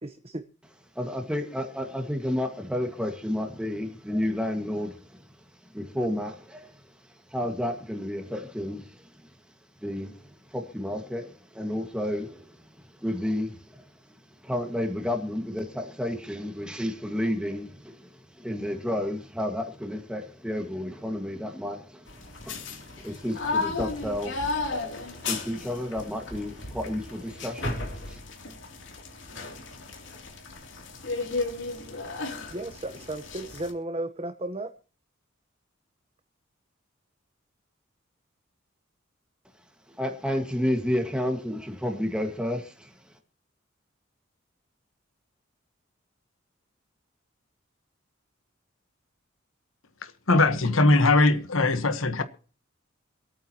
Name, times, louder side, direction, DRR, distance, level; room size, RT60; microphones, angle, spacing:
voice 1, 1.0-5.5 5.7-9.3 9.8-14.2 14.4-28.2 39.9-43.2, left 1 dB, 5° right, 1.8 m, -32 dB
sound 1, 22.1-33.7, left 3 dB, 65° left, 3.0 m, -34 dB
voice 2, 32.5-34.7, right 1 dB, 30° right, 1.0 m, -34 dB
voice 3, 50.0-52.2, left 2 dB, 85° left, 1.3 m, -21 dB
27.0 x 9.1 x 3.0 m
head